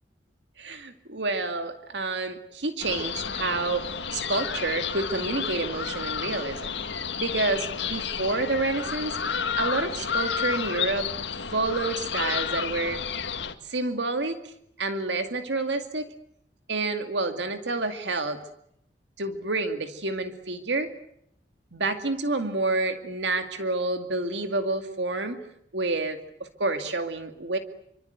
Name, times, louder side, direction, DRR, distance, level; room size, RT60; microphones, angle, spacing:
voice 1, 0.6-6.8 7.2-9.2 9.5-11.1 11.5-13.0 13.6-14.5 14.8-16.1 16.7-18.4 19.2-20.9 21.7-25.4 25.7-27.6, right 2 dB, 70° right, 7 dB, 2.3 m, -29 dB
sound 1, 2.8-13.5, left 6 dB, 75° left, 2.1 m, -31 dB
27.5 x 25.5 x 8.1 m, 0.73 s
head